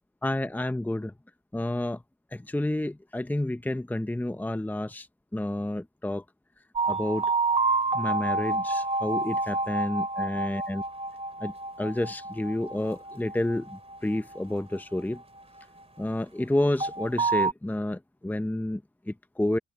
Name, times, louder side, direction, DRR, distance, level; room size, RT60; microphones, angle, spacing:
voice 1, 0.2-1.1 1.5-2.0 2.3-5.1 5.3-6.2 6.9-7.3 7.9-10.8 11.4-11.5 11.8-15.2 16.0-19.6, left 1 dB, 10° left, 1.0 m, -30 dB
sound 1, 6.8-15.8 16.8-17.5, right 3 dB, 30° right, 3.0 m, -29 dB
supercardioid pair, 45°, 21 cm